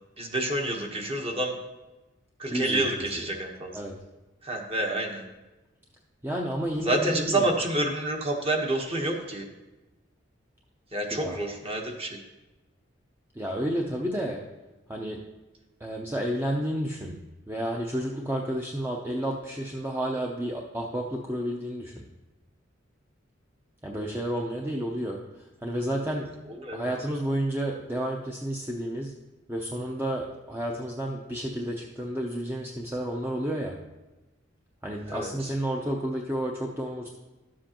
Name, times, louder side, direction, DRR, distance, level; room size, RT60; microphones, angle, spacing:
voice 1, 0.2-1.5 2.4-3.7 4.4-5.2 6.8-9.5 10.9-12.2 26.6-26.8 35.1-35.3, right 1 dB, 30° right, 2 dB, 1.1 m, -28 dB
voice 2, 2.5-3.2 3.7-3.9 6.2-7.5 11.1-11.4 13.3-14.4 14.9-15.2 15.8-17.2 17.5-22.0 23.8-26.3 26.7-29.1 29.5-33.8 34.8-37.1, equal, 10° right, -1 dB, 0.6 m, -31 dB
12.5 x 7.5 x 2.9 m, 1.1 s
head